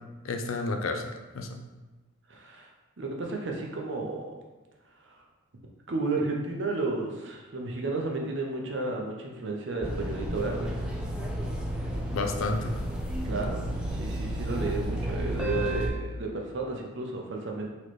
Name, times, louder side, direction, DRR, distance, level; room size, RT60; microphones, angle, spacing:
voice 1, 0.2-1.6 12.1-12.8, left 3 dB, 70° left, 4 dB, 0.4 m, -31 dB
voice 2, 2.3-2.7 3.0-4.3 5.0-5.2 5.9-11.1 13.2-13.6 13.9-17.7, right 3 dB, 55° right, 1 dB, 0.6 m, -32 dB
sound 1, 9.8-15.9, equal, 5° right, 0.3 m, -32 dB
4.1 x 3.1 x 3.1 m, 1.1 s
head